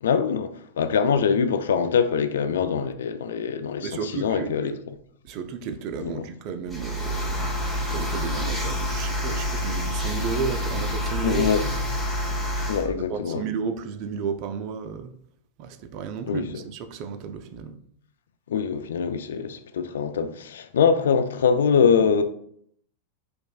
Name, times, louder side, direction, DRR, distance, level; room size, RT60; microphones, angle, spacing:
voice 1, 0.0-4.7 6.0-6.2 11.2-11.6 12.7-13.4 16.3-16.5 18.5-22.2, left 6 dB, 75° left, 0.3 m, -23 dB
voice 2, 3.8-4.8 5.2-7.4 7.9-11.8 12.8-15.1 15.6-17.8, right 6 dB, 50° right, 0.4 m, -33 dB
sound 1, 6.7-12.8, equal, ahead, 1.5 m, -27 dB
4.3 x 3.0 x 2.4 m
hypercardioid pair, 95°, 0 cm